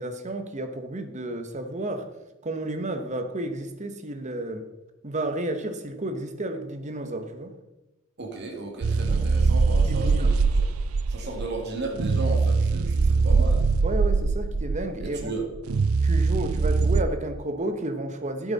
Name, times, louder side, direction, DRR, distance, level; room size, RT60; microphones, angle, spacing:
voice 1, 0.0-2.1 2.4-4.6 5.0-7.5 9.9-10.3 13.8-15.3 16.0-18.5, right 1 dB, 35° right, 7 dB, 1.1 m, -31 dB
voice 2, 8.2-10.7 11.1-13.6 15.0-15.5, right 2 dB, 55° right, 1 dB, 2.2 m, -34 dB
sound 1, 8.8-17.0, right 4 dB, 85° right, 0.5 m, -22 dB
11.5 x 8.8 x 4.1 m, 1.0 s
head